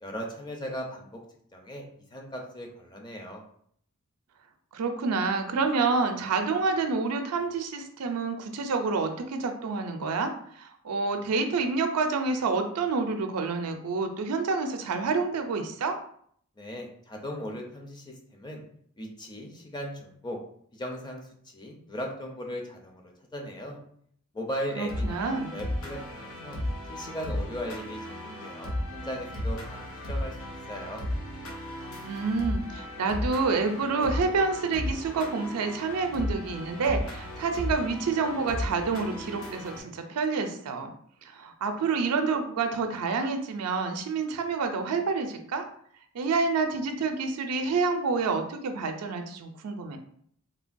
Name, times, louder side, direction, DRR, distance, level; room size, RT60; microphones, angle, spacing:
voice 1, 0.0-1.2 1.5-1.8 2.1-3.4 16.6-18.6 19.0-20.4 20.7-23.0 23.3-23.8 24.3-26.6 26.9-31.0, equal, 20° left, 1 dB, 0.5 m, -38 dB
voice 2, 4.7-16.0 24.8-25.5 32.0-40.9 41.2-45.6 46.1-50.0, right 4 dB, 85° right, 6 dB, 0.4 m, -28 dB
sound 1, 24.9-39.8, left 1 dB, 65° left, 0.7 m, -35 dB
3.2 x 2.2 x 2.5 m, 0.63 s
head